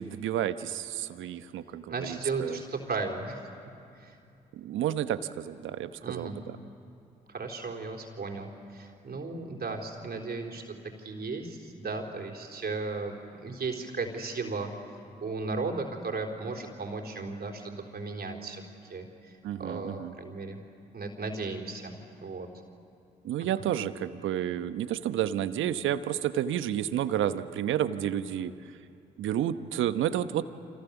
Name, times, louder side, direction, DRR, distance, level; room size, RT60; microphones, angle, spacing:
voice 1, 0.0-2.6 4.5-6.6 19.4-20.1 23.2-28.5 29.2-30.4, right 11 dB, 70° right, 12 dB, 1.0 m, -30 dB
voice 2, 1.9-3.5 4.0-4.2 6.0-6.4 7.3-14.7 15.2-18.6 18.9-19.1 19.6-20.6 20.9-22.5, right 3 dB, 50° right, 1 dB, 4.0 m, -35 dB
29.5 x 26.5 x 7.2 m, 2.6 s
hypercardioid pair, 40°, 21 cm